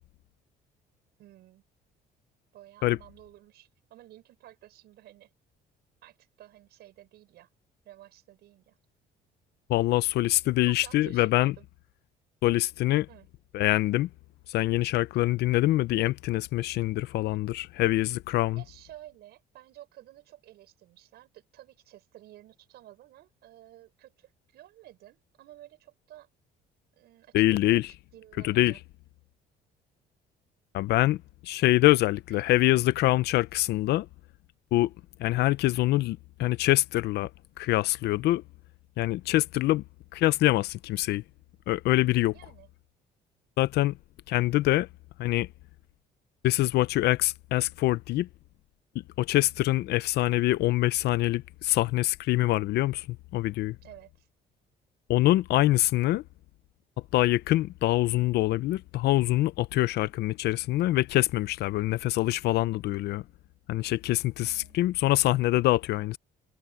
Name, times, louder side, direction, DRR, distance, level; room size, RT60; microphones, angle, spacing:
voice 1, 1.2-1.6 2.5-5.3 6.0-7.5 7.8-8.7 10.6-11.6 13.1-13.3 18.5-26.3 26.9-27.8 28.1-28.8 32.3-32.7 42.3-42.7 53.8-54.3 64.4-64.8, right 14 dB, 75° right, 6.7 m, -52 dB
voice 2, 9.7-11.5 12.4-13.1 13.5-14.1 14.5-18.6 27.3-27.9 28.4-28.7 30.7-34.1 34.7-34.9 35.2-37.3 37.6-38.4 39.0-39.8 40.1-41.2 41.7-42.3 43.6-44.0 44.3-44.9 45.2-45.5 46.4-48.3 48.9-53.8 55.1-56.2 57.1-63.2 63.7-66.2, left 16 dB, 75° left, 0.7 m, -25 dB
cardioid pair, 110°, 17 cm